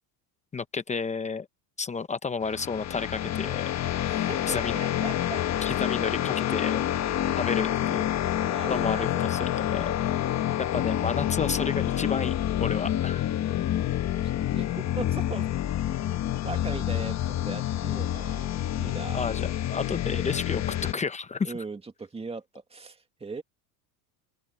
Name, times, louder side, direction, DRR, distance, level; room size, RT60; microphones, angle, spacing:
voice 1, 0.5-1.5 1.8-3.7 4.5-4.8 5.6-6.8 7.4-8.0 8.7-9.9 10.7-12.3 12.6-13.3 19.1-21.5, left 4 dB, 15° left, 0.8 m, -31 dB
sound 1, 2.4-20.9, left 12 dB, 35° left, 1.4 m, -28 dB
voice 2, 4.0-5.4 7.3-7.4 8.4-9.3 14.1-15.5 16.4-18.5 18.7-19.3 21.4-23.4, right 4 dB, 10° right, 2.2 m, -39 dB
open air
supercardioid pair, 135°, 49 cm